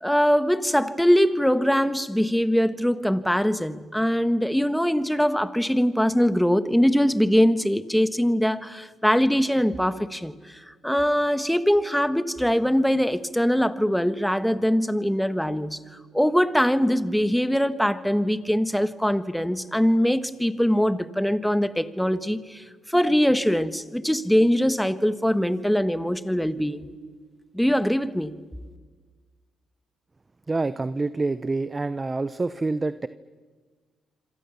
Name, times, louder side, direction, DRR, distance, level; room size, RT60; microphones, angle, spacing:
voice 1, 0.0-10.3 10.8-15.8 16.1-26.9 27.5-28.4, equal, ahead, 1.3 m, -22 dB
voice 2, 30.5-33.1, right 3 dB, 25° right, 0.7 m, -27 dB
27.0 x 26.5 x 7.1 m
cardioid pair, 90°, 0 cm